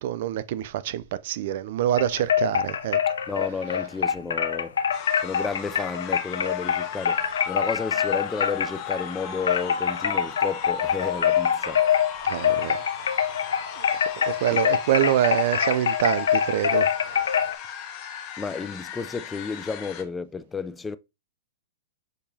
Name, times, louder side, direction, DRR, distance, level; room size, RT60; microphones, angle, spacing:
voice 1, 0.0-3.0 12.3-12.8 14.2-17.3, right 12 dB, 60° right, 0.4 m, -26 dB
sound 1, 2.0-9.1 9.4-17.5, left 8 dB, 85° left, 0.5 m, -25 dB
voice 2, 3.3-4.8 5.2-11.8 14.5-14.6 18.4-21.0, left 5 dB, 10° left, 0.4 m, -32 dB
sound 2, 4.9-20.0, left 7 dB, 40° left, 0.9 m, -37 dB
6.7 x 2.9 x 2.8 m
hypercardioid pair, 130°, 0 cm